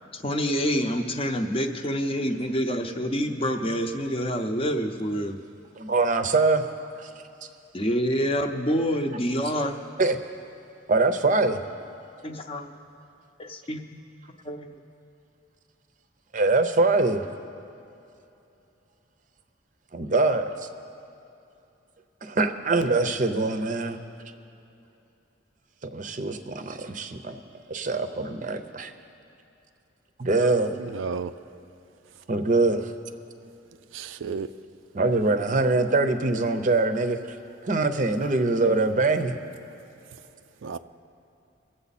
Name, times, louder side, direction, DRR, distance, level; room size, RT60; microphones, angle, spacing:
voice 1, 0.1-5.4 7.7-9.8 12.2-12.7 13.4-13.8 14.4-14.8, equal, 30° left, 5 dB, 0.7 m, -27 dB
voice 2, 5.8-6.6 7.0-7.1 10.0-10.2 10.9-11.6 16.3-17.3 19.9-20.5 22.2-24.0 25.9-27.4 27.7-28.9 30.2-30.7 32.3-32.9 34.9-37.4 37.6-39.3, right 3 dB, 40° right, 9 dB, 0.6 m, -23 dB
voice 3, 30.9-31.3 33.9-34.5 40.6-40.8, right 5 dB, 85° right, 11 dB, 0.4 m, -32 dB
22.5 x 7.8 x 4.2 m, 2.7 s
head